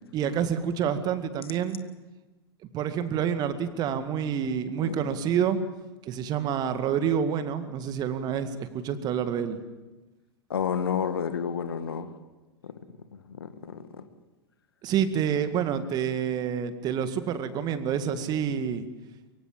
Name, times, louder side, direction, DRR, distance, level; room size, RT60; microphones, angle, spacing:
voice 1, 0.1-1.8 2.7-5.6 6.0-9.6 14.8-18.8, right 8 dB, 30° right, 10 dB, 2.0 m, -28 dB
voice 2, 10.5-12.1 12.6-12.7 13.4-13.8, left 7 dB, 65° left, 10 dB, 1.9 m, -30 dB
23.5 x 23.5 x 7.6 m, 1.1 s
figure-of-eight pair, 95°, 13 cm